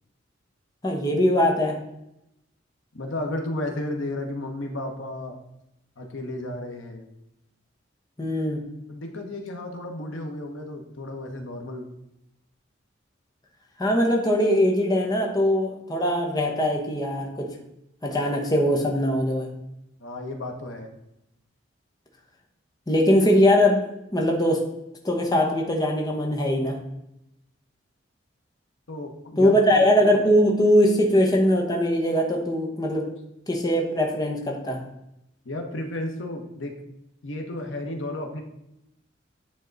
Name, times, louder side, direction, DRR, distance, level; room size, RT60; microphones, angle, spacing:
voice 1, 0.8-1.8 8.2-8.6 13.8-17.5 18.0-19.5 22.9-23.8 24.1-24.6 25.0-26.8 29.4-33.1 33.5-34.8, equal, 20° left, 0 dB, 1.0 m, -21 dB
voice 2, 2.9-5.4 6.0-7.1 8.9-11.9 20.0-20.9 28.9-29.9 35.4-36.7 37.2-38.4, left 1 dB, 80° left, 4 dB, 1.0 m, -33 dB
9.3 x 3.7 x 3.9 m, 0.85 s
head